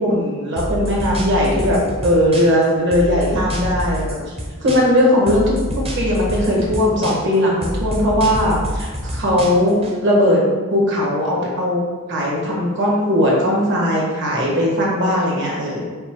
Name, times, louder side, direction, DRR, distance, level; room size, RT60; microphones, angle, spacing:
voice 1, 0.0-4.2 4.6-5.5 5.9-9.8 10.0-10.4 10.7-11.8 12.1-15.8, left 1 dB, 60° right, -3 dB, 1.3 m, -18 dB
sound 1, 0.6-2.6 2.9-5.0 5.3-7.3 7.6-9.9, equal, 30° right, 0.7 m, -26 dB
5.3 x 2.2 x 4.5 m, 1.4 s
head